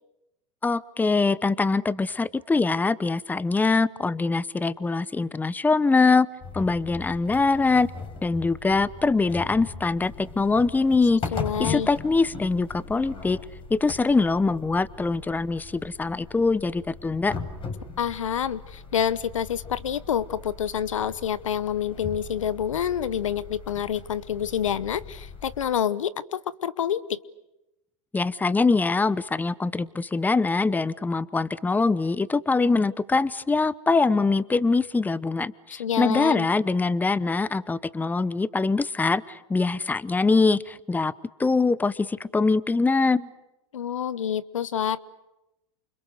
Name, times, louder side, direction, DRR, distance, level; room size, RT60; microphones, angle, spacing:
voice 1, 0.6-6.3 6.5-7.9 8.2-11.2 11.6-13.4 13.7-17.3 28.1-41.1 41.4-43.3, left 3 dB, 10° left, 19 dB, 0.9 m, -23 dB
sound 1, 6.4-25.7, left 4 dB, 35° left, 5.8 m, -39 dB
voice 2, 11.3-11.9 18.0-27.2 35.8-36.5 43.7-45.0, left 9 dB, 85° left, 19 dB, 0.9 m, -27 dB
29.5 x 28.0 x 6.5 m, 0.94 s
hypercardioid pair, 95°, 16 cm